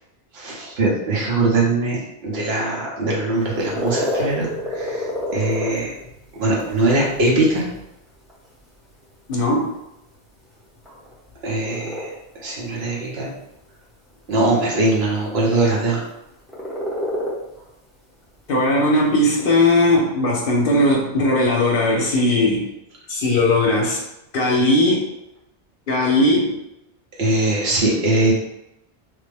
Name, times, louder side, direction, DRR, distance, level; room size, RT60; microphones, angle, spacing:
voice 1, 0.3-5.9 6.4-7.6 11.4-12.1 12.4-13.3 14.3-16.0 27.2-28.3, right 2 dB, 70° right, -3 dB, 1.1 m, -21 dB
sound 1, 3.3-20.0, left 1 dB, ahead, 0.8 m, -31 dB
voice 2, 9.3-9.7 18.5-22.7 23.1-24.0 24.3-25.0 25.9-26.6, left 1 dB, 60° left, -2 dB, 0.8 m, -18 dB
3.3 x 2.1 x 3.3 m, 0.90 s
omnidirectional pair, 1.1 m